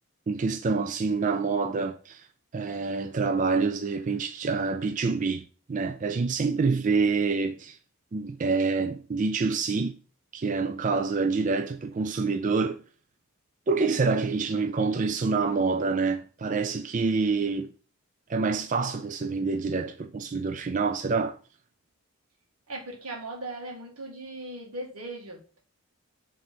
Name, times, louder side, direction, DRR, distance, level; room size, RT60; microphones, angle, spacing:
voice 1, 0.3-2.3 2.5-7.8 8.1-10.0 10.3-12.8 13.7-17.7 18.3-21.4, right 4 dB, 35° right, 0.3 m, -27 dB
voice 2, 13.8-14.2 22.7-25.6, right 2 dB, 85° right, 1.8 m, -39 dB
8.6 x 3.5 x 4.3 m
head